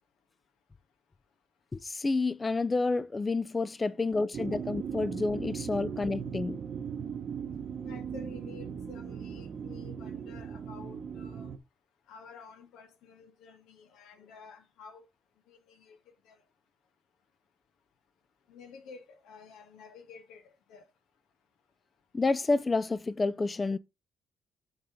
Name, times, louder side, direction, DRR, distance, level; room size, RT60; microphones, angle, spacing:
voice 1, 1.7-6.6 22.1-23.8, left 3 dB, 25° left, 0.4 m, -29 dB
voice 2, 3.8-4.4 7.8-11.5 12.1-15.1 15.5-16.0 16.2-16.4 18.5-20.8, left 5 dB, 85° left, 1.5 m, -51 dB
sound 1, 4.3-11.6, right 7 dB, 60° right, 0.8 m, -38 dB
7.9 x 3.7 x 5.1 m
cardioid pair, 90°, 0 cm